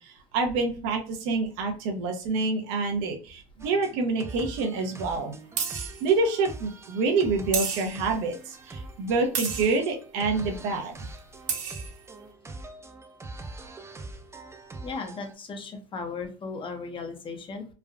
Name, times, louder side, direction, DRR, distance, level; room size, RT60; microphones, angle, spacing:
voice 1, 0.0-5.3 6.0-10.9, right 3 dB, 75° right, 3 dB, 0.7 m, -27 dB
sound 1, 3.6-15.3, right 2 dB, 15° right, 0.5 m, -43 dB
sound 2, 4.3-4.4 5.6-6.0 7.5-8.1 9.3-9.8 11.2-11.3 11.5-11.9, right 6 dB, 50° right, 0.9 m, -31 dB
voice 2, 14.8-17.7, left 4 dB, 30° left, 5 dB, 0.8 m, -36 dB
3.3 x 2.3 x 2.2 m, 0.37 s
supercardioid pair, 90°, 16 cm